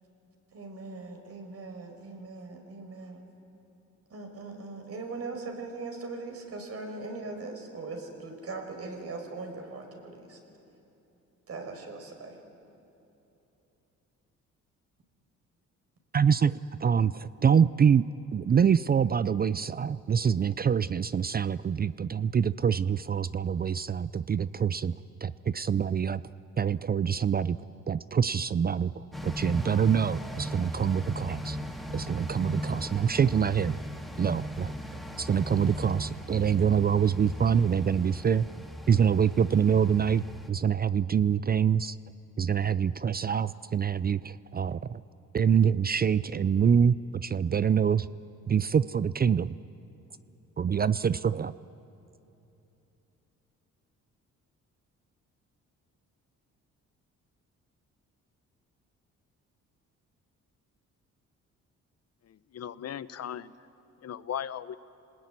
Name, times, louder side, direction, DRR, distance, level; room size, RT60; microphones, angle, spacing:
voice 1, 0.5-3.3 4.1-10.4 11.5-12.4, right 3 dB, 50° right, 4 dB, 5.5 m, -40 dB
voice 2, 16.1-25.0 25.2-26.2 26.6-27.6 27.9-31.6 31.9-33.7 34.2-34.7 35.2-38.5 38.9-42.0 42.4-45.0 45.3-48.1 48.5-49.6 50.6-51.5, right 7 dB, 30° right, 17 dB, 0.5 m, -25 dB
sound 1, 29.1-40.5, equal, ahead, 2.4 m, -38 dB
voice 3, 62.2-63.5 64.0-64.8, left 9 dB, 55° left, 15 dB, 0.9 m, -37 dB
27.5 x 20.0 x 9.6 m, 2.9 s
cardioid pair, 90°, 30 cm